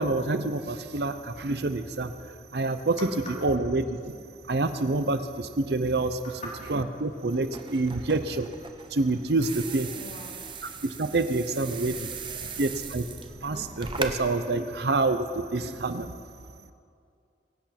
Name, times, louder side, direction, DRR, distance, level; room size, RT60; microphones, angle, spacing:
voice 1, 0.0-2.1 2.5-4.1 4.5-6.2 6.7-8.5 8.9-10.0 10.8-12.1 12.6-13.1 13.4-16.2, right 2 dB, 60° right, 10 dB, 0.7 m, -27 dB
sound 1, 7.3-14.2, right 5 dB, 25° right, 0.8 m, -39 dB
voice 2, 9.9-10.5 11.9-12.5, left 2 dB, 40° left, -5 dB, 4.0 m, -44 dB
22.5 x 9.3 x 5.8 m, 2.4 s
head